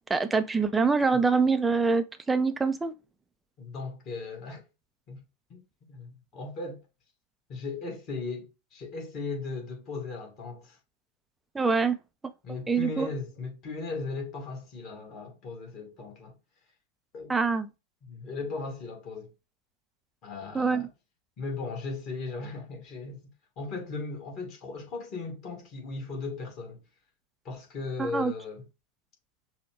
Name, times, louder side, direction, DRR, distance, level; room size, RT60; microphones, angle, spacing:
voice 1, 0.0-2.9 11.5-12.0 12.7-13.1 17.3-17.7 20.5-20.8 28.0-28.3, right 4 dB, 10° right, 0.5 m, -25 dB
voice 2, 3.6-4.6 5.1-5.2 5.5-5.6 5.9-6.8 7.5-10.8 12.4-16.3 17.1-17.4 18.0-19.3 20.2-20.9 21.4-26.8 27.5-28.7, left 3 dB, 35° left, 1.7 m, -37 dB
5.8 x 2.3 x 3.3 m
figure-of-eight pair, 90°, 0 cm